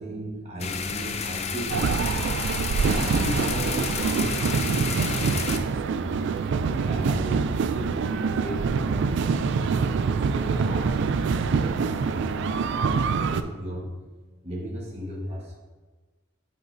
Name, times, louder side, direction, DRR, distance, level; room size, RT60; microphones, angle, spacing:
voice 1, 0.0-1.9 2.8-6.1 6.5-9.8 10.3-13.9 14.4-15.6, equal, 30° right, -3 dB, 1.3 m, -36 dB
sound 1, 0.6-5.6, left 6 dB, 30° left, 0.4 m, -31 dB
sound 2, 1.7-13.4, right 5 dB, 60° right, 0.3 m, -25 dB
9.3 x 5.1 x 2.6 m, 1.3 s
head